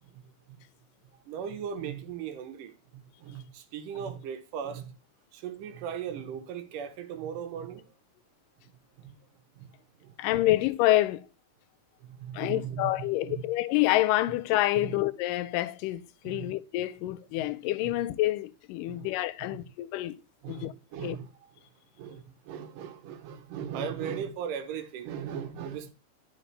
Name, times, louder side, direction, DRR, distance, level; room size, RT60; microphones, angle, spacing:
voice 1, 1.3-4.9 5.3-7.9 8.6-8.7 9.0-9.1 9.6-9.7 10.0-10.2 12.0-13.4 14.8-14.9 16.2-16.5 17.4-17.5 17.8-17.9 18.9-19.1 19.4-19.6 20.4-21.3 22.0-25.9, right 8 dB, 80° right, 2.5 m, -38 dB
voice 2, 10.2-11.3 12.3-20.2 20.5-20.7 21.0-21.2, left 16 dB, 90° left, 2.2 m, -27 dB
11.0 x 4.9 x 3.3 m
omnidirectional pair, 3.8 m